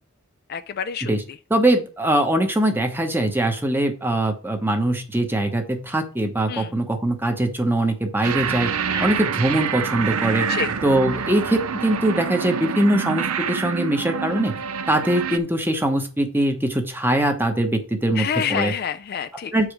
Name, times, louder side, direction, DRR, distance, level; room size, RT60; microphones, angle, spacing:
voice 1, 0.5-1.1 6.5-6.7 8.9-9.1 10.5-10.7 18.2-19.5, left 7 dB, 45° left, 0.4 m, -27 dB
voice 2, 1.5-8.7 9.0-10.5 10.8-14.6 14.9-18.7 19.5-19.7, right 1 dB, 10° right, 1.0 m, -22 dB
sound 1, 8.2-15.4, right 6 dB, 80° right, 0.6 m, -26 dB
7.7 x 4.9 x 4.9 m
head